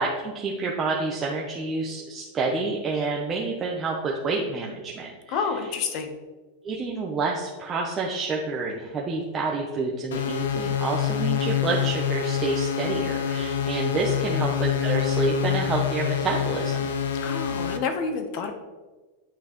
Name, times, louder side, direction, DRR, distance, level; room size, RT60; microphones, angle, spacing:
voice 1, 0.0-5.5 6.6-16.9, right 3 dB, 20° right, -2 dB, 0.6 m, -28 dB
voice 2, 5.3-6.1 14.3-14.4 17.2-18.5, left 5 dB, 45° left, 7 dB, 0.9 m, -29 dB
sound 1, 10.1-17.8, left 8 dB, 85° left, 0.6 m, -26 dB
8.6 x 5.3 x 3.0 m, 1.3 s
supercardioid pair, 160°, 0 cm